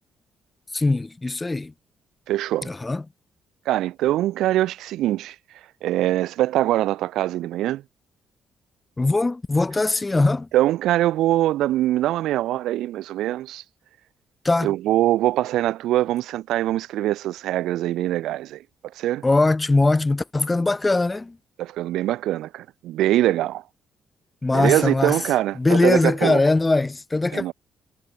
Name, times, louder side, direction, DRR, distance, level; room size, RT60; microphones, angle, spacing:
voice 1, 0.7-1.7 2.6-3.0 9.0-10.5 14.4-14.8 19.2-21.4 24.4-25.3 25.6-27.5, left 2 dB, 20° left, 0.3 m, -21 dB
voice 2, 2.3-2.7 3.7-5.3 5.8-7.8 10.5-13.6 14.6-18.6 19.0-19.2 21.6-23.6 24.5-26.4 27.3-27.5, right 14 dB, 85° right, 0.6 m, -23 dB
cardioid pair, 90°, 0 cm